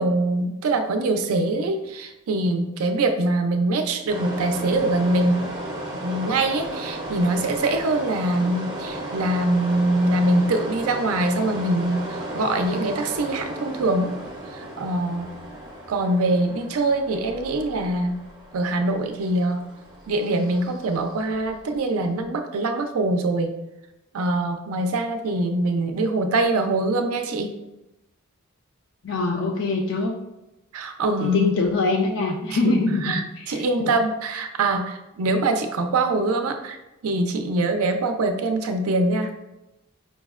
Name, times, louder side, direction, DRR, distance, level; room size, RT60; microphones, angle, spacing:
voice 1, 0.0-5.5 5.9-14.2 14.5-15.3 15.9-18.2 18.5-19.6 20.1-23.6 24.1-27.5 30.7-31.5 32.4-32.7 33.0-36.8 37.0-39.3, right 2 dB, 80° right, 6 dB, 0.4 m, -23 dB
sound 1, 4.1-21.7, right 1 dB, 20° right, 0.5 m, -35 dB
voice 2, 29.0-30.1 31.2-33.9, left 3 dB, 55° left, 1 dB, 0.3 m, -24 dB
5.2 x 2.1 x 2.3 m, 0.94 s
head